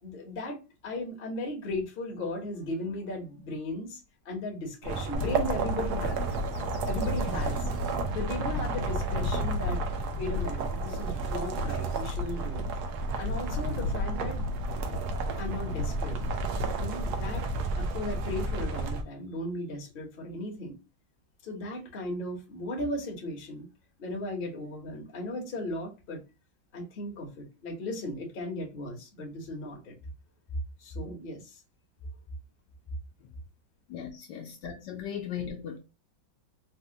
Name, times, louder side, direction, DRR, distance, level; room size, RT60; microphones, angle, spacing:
voice 1, 0.0-0.6 0.8-4.0 4.2-6.2 6.8-7.7 8.1-9.8 10.2-12.6 13.1-14.4 15.4-16.2 16.8-17.5 17.8-20.7 21.4-23.7 24.0-26.2 26.7-29.9 30.8-31.6, left 1 dB, 40° left, 0.8 m, -36 dB
sound 1, 4.8-19.0, right 3 dB, 70° right, 1.0 m, -32 dB
Bird / Wind, 5.1-17.9, left 2 dB, 90° left, 1.4 m, -35 dB
voice 2, 33.9-35.8, left 8 dB, 75° left, 1.1 m, -37 dB
4.1 x 2.1 x 2.6 m
omnidirectional pair, 2.1 m